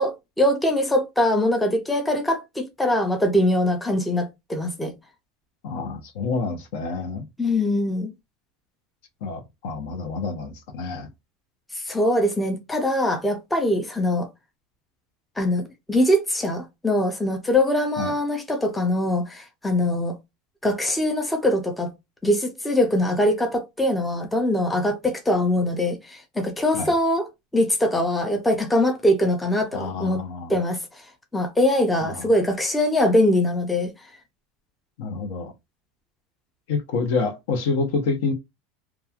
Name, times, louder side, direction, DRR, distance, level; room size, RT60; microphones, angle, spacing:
voice 1, 0.0-4.9 7.4-8.1 11.7-14.3 15.4-20.2 20.6-21.9 22.2-27.3 27.5-30.2 30.5-31.0 31.3-33.9, left 1 dB, 5° left, 0.4 m, -22 dB
voice 2, 5.6-7.3 9.2-11.1 18.0-18.1 26.7-26.9 29.7-30.5 32.0-32.3 35.0-35.5 36.7-38.3, left 4 dB, 70° left, 0.7 m, -28 dB
2.9 x 2.3 x 2.3 m
supercardioid pair, 155°, 0 cm